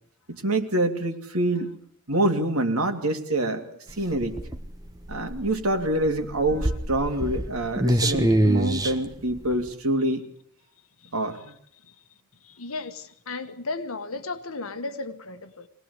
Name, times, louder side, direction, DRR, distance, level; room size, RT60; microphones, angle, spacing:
voice 1, 0.3-1.7 2.1-4.4 5.1-10.2 11.1-11.5, right 1 dB, 70° right, 2.7 m, -26 dB
sound 1, 3.9-9.7, right 1 dB, 15° right, 1.4 m, -25 dB
voice 2, 10.8-11.5 11.8-12.0 12.4-15.7, left 3 dB, 70° left, 1.6 m, -36 dB
24.0 x 18.5 x 8.3 m
head